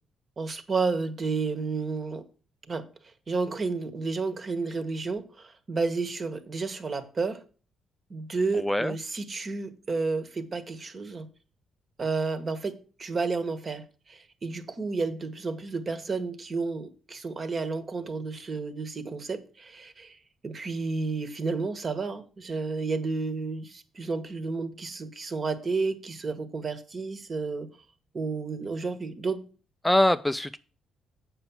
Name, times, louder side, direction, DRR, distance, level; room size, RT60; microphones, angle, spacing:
voice 1, 0.4-2.2 2.7-2.8 3.3-7.4 8.1-11.3 12.0-20.2 20.4-27.7 28.1-29.4, right 4 dB, 40° right, 1.5 m, -31 dB
voice 2, 8.6-8.9 29.8-30.6, left 1 dB, 5° left, 0.4 m, -23 dB
7.9 x 6.0 x 7.1 m
cardioid pair, 90°, 0 cm